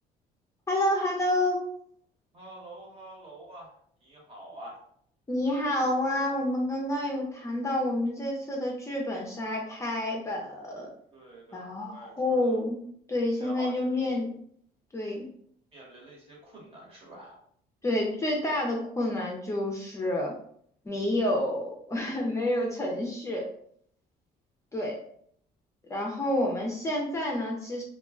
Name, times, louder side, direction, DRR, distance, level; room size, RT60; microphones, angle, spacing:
voice 1, 0.7-1.6 5.3-10.9 11.5-12.8 13.1-14.3 14.9-15.3 17.8-20.3 20.9-23.5 24.7-25.0 25.9-27.8, left 1 dB, 15° left, -1 dB, 0.5 m, -29 dB
voice 2, 2.3-3.7 4.0-4.8 11.1-12.1 12.4-12.6 13.4-13.7 15.7-17.4, right 1 dB, 35° right, -3 dB, 1.2 m, -46 dB
2.3 x 2.1 x 3.6 m, 0.64 s
cardioid pair, 110°, 17 cm